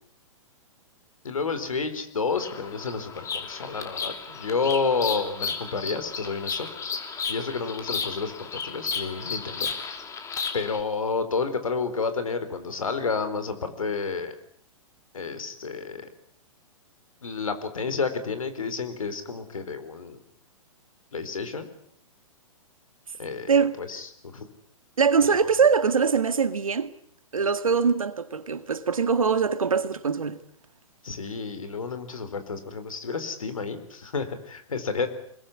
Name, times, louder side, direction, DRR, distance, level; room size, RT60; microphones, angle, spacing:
voice 1, 1.2-6.7 7.3-9.7 10.5-14.3 15.1-16.1 17.2-20.2 21.1-21.7 23.2-24.4 25.2-25.4 31.0-35.1, left 4 dB, 75° left, 4.3 m, -30 dB
Bird vocalization bird call bird song, 2.3-10.8, left 5 dB, 15° left, 3.0 m, -34 dB
voice 2, 23.5-23.8 25.0-26.9 27.3-30.4, right 5 dB, 75° right, 2.0 m, -22 dB
25.5 x 21.5 x 8.6 m
figure-of-eight pair, 115°, 18 cm